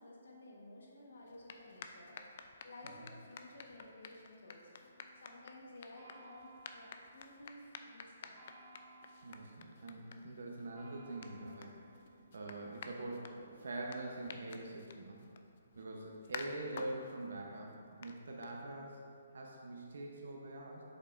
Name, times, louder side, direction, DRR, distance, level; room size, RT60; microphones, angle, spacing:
voice 1, 0.0-2.2 2.6-4.8 5.1-8.4, left 1 dB, 85° left, -2 dB, 1.3 m, -54 dB
sound 1, 1.2-19.0, left 5 dB, 45° left, 0.3 m, -53 dB
sound 2, 4.8-14.9, right 2 dB, 30° right, 1.3 m, -62 dB
voice 2, 9.2-12.0 12.3-15.2 15.7-19.0 19.3-20.8, right 2 dB, 75° right, -1 dB, 0.8 m, -44 dB
6.8 x 5.4 x 2.5 m, 2.4 s
hypercardioid pair, 170°, 0 cm